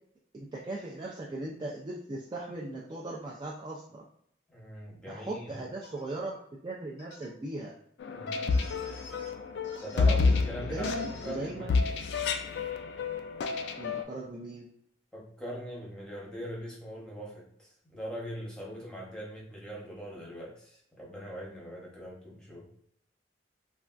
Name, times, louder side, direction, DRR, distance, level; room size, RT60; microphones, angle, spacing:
voice 1, 0.3-4.0 5.1-6.4 6.6-7.8 10.6-11.7 13.8-14.7, right 2 dB, 25° right, -3 dB, 0.3 m, -38 dB
voice 2, 4.5-5.6 8.1-8.4 9.8-11.7 15.1-22.7, equal, 5° left, -4 dB, 0.8 m, -41 dB
sound 1, 5.8-6.0 7.0-7.3 8.5-9.3 9.6-10.5 11.0-11.4, left 2 dB, 90° left, 0.7 m, -50 dB
sound 2, 8.0-14.0, left 4 dB, 65° left, 0.3 m, -29 dB
3.3 x 2.2 x 2.4 m, 0.69 s
head